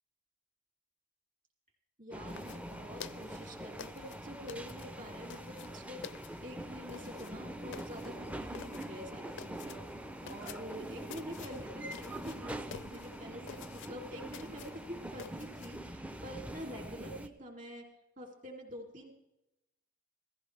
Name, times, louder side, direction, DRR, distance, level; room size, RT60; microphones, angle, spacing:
voice 1, 2.0-17.8 18.2-19.1, equal, 40° right, 1 dB, 2.8 m, -47 dB
sound 1, 2.1-17.3, right 1 dB, 5° right, 0.5 m, -44 dB
sound 2, 2.3-15.8, left 7 dB, 60° left, 0.5 m, -51 dB
16.5 x 14.0 x 3.3 m, 0.91 s
head